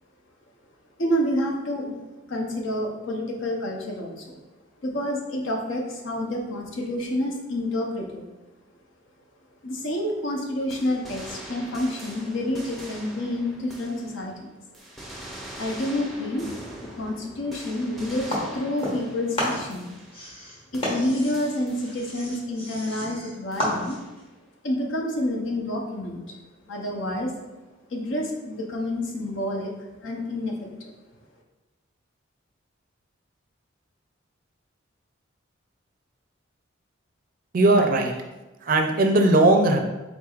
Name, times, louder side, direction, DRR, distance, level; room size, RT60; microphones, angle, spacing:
voice 1, 1.0-2.0 2.3-4.4 4.8-8.2 9.6-14.5 15.6-16.4 16.8-19.9 20.7-24.0 24.6-26.3 26.7-27.3 27.9-29.7 30.0-30.9, left 1 dB, 70° left, 1 dB, 0.7 m, -28 dB
sound 1, 10.7-14.4 14.7-20.5 20.7-22.4 23.5-24.2, right 1 dB, ahead, 0.6 m, -43 dB
sound 2, 18.3-19.1 19.3-24.2, equal, 30° left, 1.0 m, -31 dB
voice 2, 37.5-38.1 38.6-39.8, right 2 dB, 45° right, 4 dB, 0.4 m, -18 dB
4.5 x 3.9 x 2.4 m, 1.1 s
head